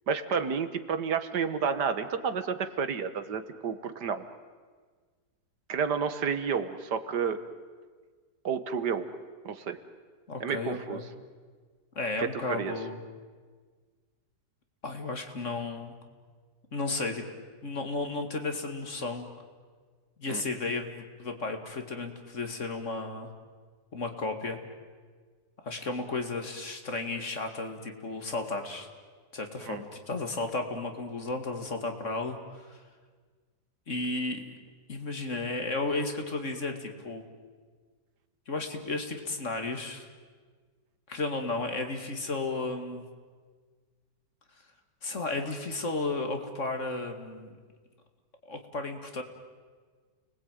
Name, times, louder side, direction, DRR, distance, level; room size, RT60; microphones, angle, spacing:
voice 1, 0.1-4.2 5.7-7.4 8.4-9.1 9.5-9.8 10.4-11.0 12.2-12.7 20.3-20.4 29.6-29.8, right 6 dB, 75° right, 11 dB, 1.9 m, -30 dB
voice 2, 10.3-11.0 12.0-13.0 14.8-15.9 16.7-17.2 17.6-19.3 20.2-23.3 23.9-24.6 25.6-28.9 29.3-32.8 33.9-34.4 34.9-37.2 38.5-40.1 41.1-43.0 45.0-47.5 48.4-49.2, left 3 dB, 45° left, 5 dB, 2.5 m, -33 dB
30.0 x 20.0 x 9.2 m, 1.5 s
omnidirectional pair, 1.8 m